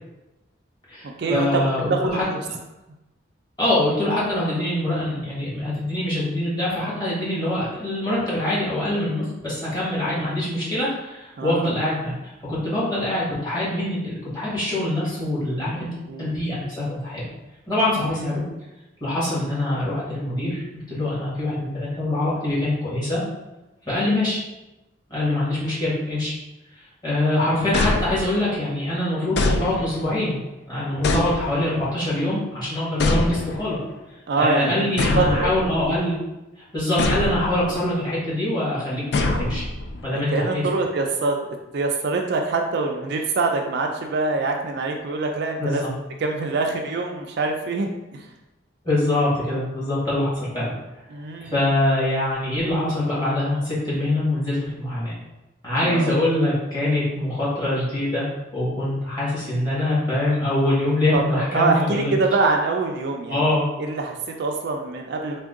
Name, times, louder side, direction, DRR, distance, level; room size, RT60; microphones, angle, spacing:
voice 1, 0.9-2.2 3.6-12.1 12.5-15.9 16.2-17.2 17.7-18.4 19.0-20.6 20.9-23.2 23.8-24.4 25.1-26.3 27.0-30.4 30.7-33.8 34.4-36.2 36.7-39.6 40.0-40.6 45.6-45.9 48.8-50.7 51.4-55.1 55.6-58.3 58.5-62.1 63.3-63.7, left 1 dB, 20° left, -9 dB, 1.4 m, -24 dB
voice 2, 1.9-2.4 11.4-11.8 15.8-16.3 18.3-18.4 34.3-35.5 40.1-41.4 41.7-45.9 46.2-48.3 51.1-51.5 55.8-56.2 61.1-63.5 63.8-65.4, right 3 dB, 55° right, 3 dB, 0.3 m, -25 dB
sound 1, 27.7-28.6 29.4-30.2 31.0-31.9 33.0-33.8 35.0-36.0 37.0-37.8 39.1-40.0, left 2 dB, 55° left, 0.3 m, -24 dB
3.5 x 2.2 x 3.6 m, 1.0 s
head